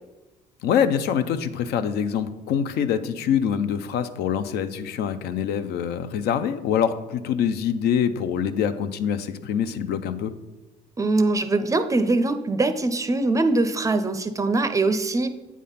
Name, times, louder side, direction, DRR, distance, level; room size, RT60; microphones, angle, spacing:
voice 1, 0.6-10.3, left 8 dB, 75° left, 10 dB, 0.5 m, -25 dB
voice 2, 11.0-15.3, right 2 dB, 20° right, 9 dB, 0.5 m, -22 dB
8.5 x 3.6 x 5.6 m, 1.1 s
cardioid pair, 110°, 17 cm